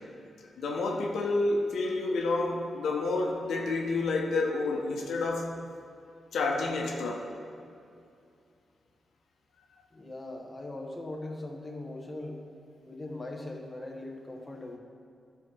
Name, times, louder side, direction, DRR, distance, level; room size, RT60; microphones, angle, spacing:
voice 1, 0.6-5.5 6.3-7.3, left 3 dB, 85° left, 1 dB, 1.0 m, -29 dB
voice 2, 9.9-12.4 12.8-14.8, left 2 dB, 20° left, 1 dB, 1.2 m, -40 dB
12.0 x 4.7 x 6.2 m, 2.5 s
cardioid pair, 90°, 0 cm